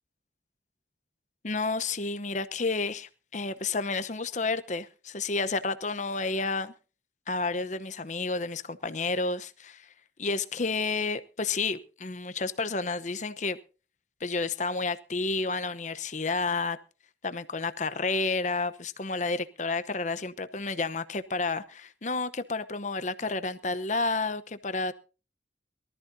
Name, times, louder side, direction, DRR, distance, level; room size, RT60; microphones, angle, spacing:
voice 1, 1.4-6.7 7.3-9.9 10.2-13.6 14.2-16.8 17.2-24.9, left 3 dB, 40° left, 0.9 m, -30 dB
23.0 x 13.5 x 2.8 m
head